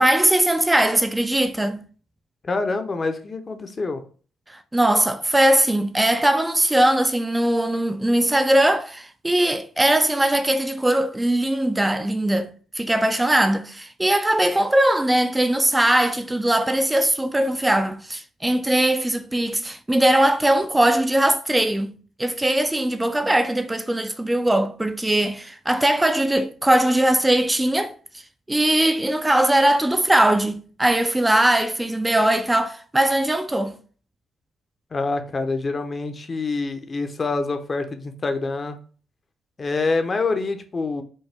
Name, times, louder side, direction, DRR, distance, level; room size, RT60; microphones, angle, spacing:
voice 1, 0.0-1.8 4.5-12.5 12.7-21.9 22.2-27.9 28.5-33.8, right 1 dB, 10° right, 0.4 m, -20 dB
voice 2, 2.4-4.0 34.9-38.8 39.6-41.0, left 3 dB, 35° left, 0.7 m, -26 dB
5.3 x 2.2 x 3.4 m
cardioid pair, 90°, 0 cm